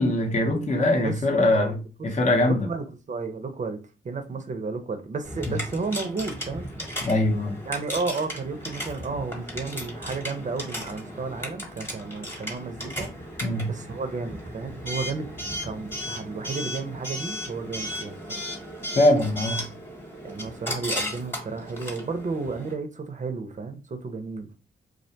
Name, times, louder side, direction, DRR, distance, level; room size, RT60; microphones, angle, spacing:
voice 1, 0.0-2.7 5.5-5.6 7.0-7.6 13.4-13.7 19.0-19.7, left 1 dB, 35° left, 0.6 m, -22 dB
voice 2, 1.0-2.1 2.4-3.8 4.0-6.7 7.7-13.1 13.6-15.3 15.6-18.5 20.2-24.5, right 4 dB, 40° right, 0.6 m, -32 dB
Coin (dropping) / Alarm, 5.2-22.7, equal, 10° left, 1.0 m, -35 dB
2.3 x 2.2 x 2.7 m
cardioid pair, 70°, 20 cm